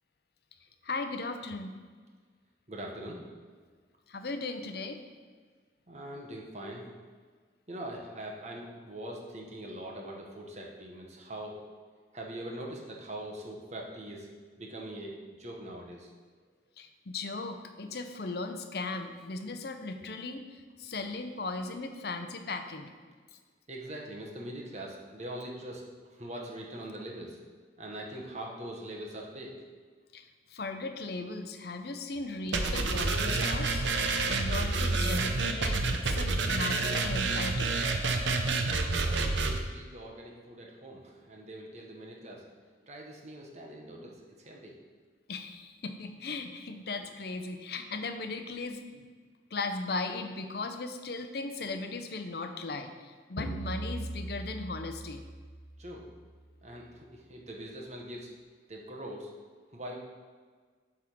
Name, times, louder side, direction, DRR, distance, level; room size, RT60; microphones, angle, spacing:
voice 1, 0.8-1.7 4.1-5.0 16.8-20.4 20.8-22.9 30.1-33.9 34.3-37.8 38.5-38.6 45.3-49.1 49.5-55.2, left 3 dB, 55° left, 7 dB, 0.6 m, -37 dB
voice 2, 2.7-3.2 5.9-6.9 7.7-11.5 12.1-14.3 14.6-16.1 23.7-27.4 27.8-29.5 38.9-42.4 42.9-44.1 44.4-44.7 55.8-56.1 56.6-58.3 58.7-59.3 59.7-60.0, right 1 dB, 40° right, 0 dB, 1.1 m, -42 dB
sound 1, 32.5-39.6, right 3 dB, 80° right, 0.7 m, -28 dB
sound 2, 53.4-56.1, right 1 dB, 85° left, 0.9 m, -39 dB
8.1 x 3.7 x 6.1 m, 1.5 s
head